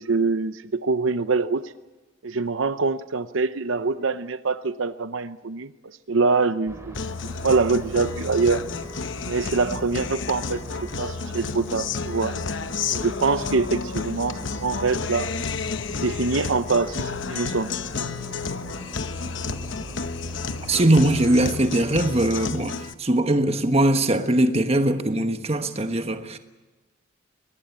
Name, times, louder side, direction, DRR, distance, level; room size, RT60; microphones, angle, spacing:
voice 1, 0.0-1.6 2.2-5.7 6.1-7.0 7.4-8.6 9.2-10.6 11.0-12.3 12.9-15.3 15.9-17.7, right 4 dB, 85° right, 0.8 m, -24 dB
sound 1, 6.7-22.1, equal, 15° right, 3.9 m, -41 dB
Guitar, 6.9-22.9, left 5 dB, 75° left, 0.9 m, -31 dB
voice 2, 20.7-26.4, right 1 dB, 30° right, 1.3 m, -21 dB
23.0 x 19.5 x 8.4 m
head